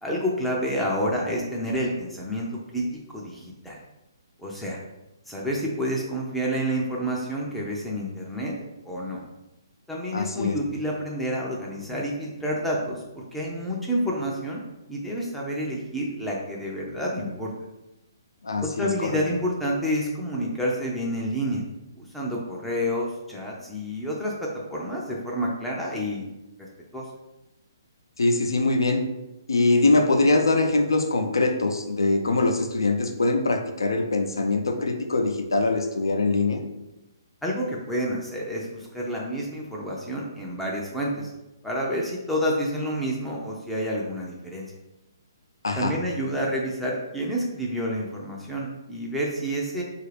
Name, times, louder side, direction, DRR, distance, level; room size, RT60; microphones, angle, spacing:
voice 1, 0.0-3.8 4.4-4.8 5.3-8.5 8.9-9.2 9.9-14.6 14.9-17.5 18.6-21.6 22.0-26.3 26.6-26.7 26.9-27.1 37.4-41.3 41.6-44.7 45.8-49.8, equal, ahead, -5 dB, 0.5 m, -29 dB
voice 2, 10.1-10.6 18.4-19.2 28.2-29.0 29.5-36.6 45.6-45.9, left 2 dB, 80° left, 5 dB, 0.5 m, -23 dB
4.0 x 2.4 x 3.2 m, 0.97 s
figure-of-eight pair, 135°, 2 cm